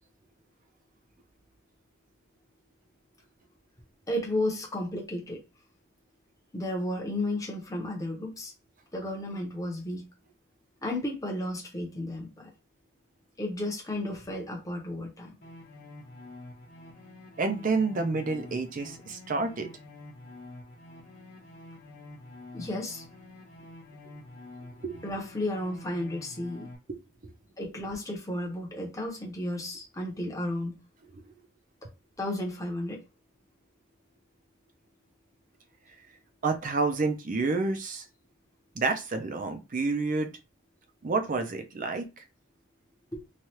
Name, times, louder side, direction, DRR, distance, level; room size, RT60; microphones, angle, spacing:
voice 1, 4.1-5.4 6.5-8.5 8.9-10.1 10.8-12.5 13.4-15.3 22.5-23.0 25.0-26.7 27.6-30.8 32.2-33.0 43.1-43.2, left 1 dB, 15° left, 0.8 m, -33 dB
sound 1, 15.4-26.7, left 2 dB, 50° left, 1.0 m, -48 dB
voice 2, 17.4-19.7 24.8-25.0 26.9-27.0 27.2-27.3 31.1-31.3 36.4-38.0 38.8-40.3 41.0-42.2, right 3 dB, 40° right, 0.5 m, -29 dB
3.2 x 2.3 x 2.8 m
head